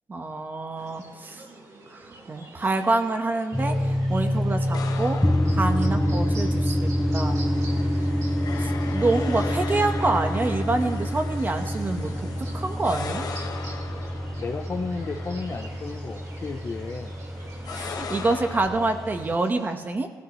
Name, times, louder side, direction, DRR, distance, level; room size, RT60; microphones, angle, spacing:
voice 1, 0.1-1.4 1.9-2.0 2.3-5.2 5.5-7.4 8.6-12.3 12.5-13.3 17.7-20.1, right 2 dB, 25° right, 5 dB, 1.2 m, -27 dB
sound 1, 0.7-19.7, right 2 dB, 50° right, 2.3 m, -44 dB
sound 2, 3.5-19.4, equal, 5° left, 0.6 m, -27 dB
sound 3, 4.7-18.7, left 6 dB, 60° left, 1.1 m, -40 dB
voice 2, 14.4-17.1, left 4 dB, 35° left, 7 dB, 0.8 m, -33 dB
19.5 x 14.0 x 3.2 m, 1.4 s
cardioid pair, 115°, 7 cm